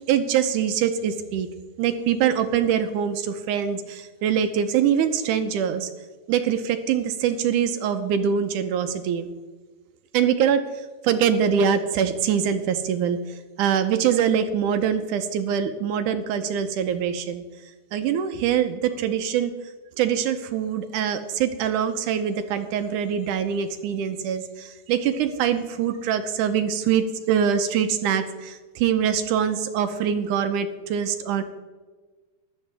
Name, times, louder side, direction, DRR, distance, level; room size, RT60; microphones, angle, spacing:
voice 1, 0.1-1.5 1.8-5.9 6.3-9.3 10.1-13.2 13.6-17.4 17.9-19.5 20.0-31.4, right 8 dB, 80° right, 9 dB, 2.1 m, -24 dB
15.5 x 11.5 x 3.4 m, 1.3 s
omnidirectional pair, 3.9 m